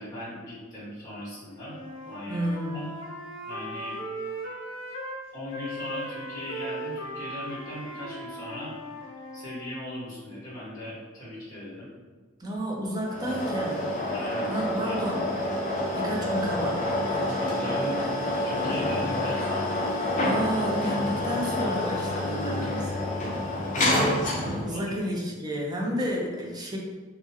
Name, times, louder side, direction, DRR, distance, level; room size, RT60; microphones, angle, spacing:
voice 1, 0.0-2.4 2.7-2.8 3.4-4.0 5.3-8.7 9.3-11.9 14.1-15.0 17.4-18.1 18.4-19.8 22.4-22.8 24.7-25.1, left 1 dB, 20° left, -10 dB, 1.2 m, -39 dB
Wind instrument woodwind instrument, 1.6-5.2 5.5-9.7, right 1 dB, 85° left, 0.6 m, -38 dB
voice 2, 2.3-2.9 12.4-13.9 14.5-15.3 15.9-17.4 20.2-22.8 24.6-26.8, equal, 20° right, -2 dB, 0.5 m, -31 dB
sound 1, 13.1-24.8, left 1 dB, 40° left, 0.6 m, -28 dB
2.9 x 2.5 x 2.7 m, 1.3 s
head